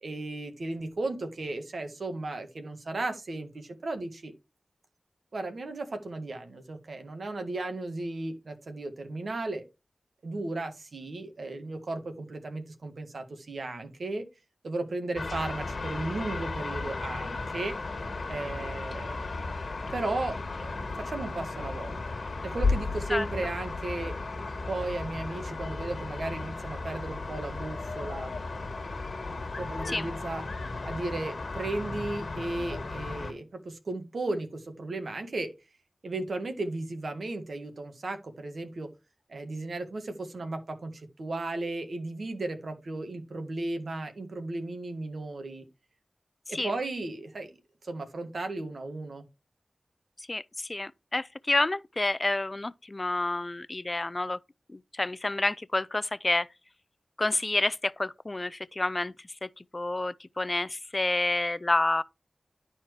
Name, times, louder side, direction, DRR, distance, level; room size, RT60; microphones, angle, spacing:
voice 1, 0.0-4.3 5.3-9.6 10.2-14.3 14.6-17.8 18.3-19.3 19.9-24.1 24.7-28.3 29.6-30.4 30.8-35.5 36.0-38.9 39.3-45.7 46.5-47.5 47.8-49.2, right 2 dB, 80° right, 1.6 m, -35 dB
sound 1, 15.2-33.3, left 3 dB, 75° left, 1.4 m, -35 dB
voice 2, 50.3-54.4 54.9-56.5 57.2-59.1 59.4-62.0, left 2 dB, 35° left, 0.4 m, -29 dB
11.5 x 4.3 x 4.7 m
wide cardioid pair, 55°, 0 cm